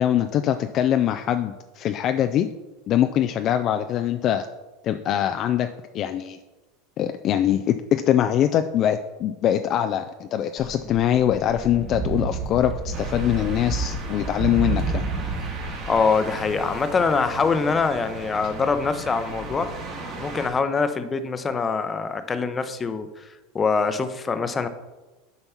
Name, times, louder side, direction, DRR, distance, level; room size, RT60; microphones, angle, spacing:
voice 1, 0.0-2.5 2.9-4.5 4.8-5.7 5.9-6.4 7.0-15.1, left 10 dB, 45° left, 8 dB, 0.4 m, -23 dB
sound 1, 10.6-16.0, right 3 dB, 10° right, 1.0 m, -30 dB
sound 2, 12.9-20.5, right 2 dB, 50° right, 2.2 m, -36 dB
voice 2, 15.9-19.7 20.2-23.2 23.5-24.7, left 4 dB, 25° left, 10 dB, 0.7 m, -24 dB
7.9 x 4.4 x 5.7 m, 1.1 s
hypercardioid pair, 90°, 0 cm